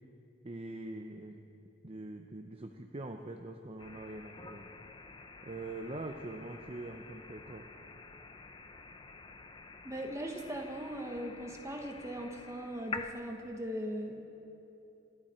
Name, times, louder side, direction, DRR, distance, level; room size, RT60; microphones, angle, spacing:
voice 1, 0.4-1.5 1.8-4.7 5.4-7.6, right 2 dB, 30° right, 4 dB, 0.7 m, -43 dB
sound 1, 3.8-13.1, left 4 dB, 25° left, 0.6 m, -48 dB
voice 2, 9.8-14.3, equal, 15° right, 2 dB, 1.2 m, -39 dB
26.5 x 12.0 x 4.4 m, 2.9 s
head